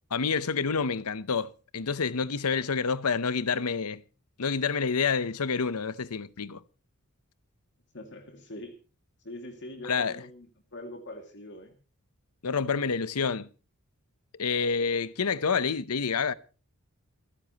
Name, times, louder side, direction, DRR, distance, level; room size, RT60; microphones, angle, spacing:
voice 1, 0.1-4.0 4.4-6.6 9.8-10.2 12.4-13.5 14.4-16.3, left 5 dB, 85° left, 0.8 m, -28 dB
voice 2, 7.9-8.7 9.2-11.8, left 1 dB, 55° left, 2.3 m, -43 dB
27.5 x 10.0 x 3.0 m
head